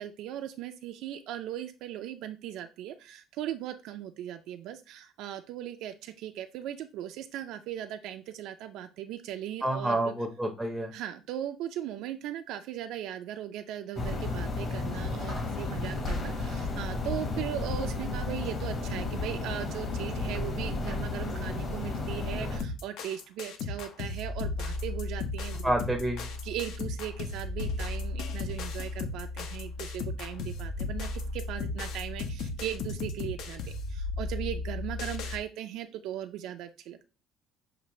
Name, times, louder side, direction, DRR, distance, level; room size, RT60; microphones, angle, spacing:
voice 1, 0.0-10.1 10.9-25.7 26.4-37.1, right 11 dB, 70° right, 6 dB, 0.4 m, -38 dB
voice 2, 9.6-10.9 25.6-26.2, right 1 dB, ahead, 3 dB, 0.6 m, -28 dB
sound 1, 14.0-22.6, left 3 dB, 30° left, 1.1 m, -33 dB
sound 2, 22.6-35.4, left 3 dB, 70° left, 0.7 m, -35 dB
6.7 x 2.5 x 3.0 m, 0.32 s
cardioid pair, 160°, 0 cm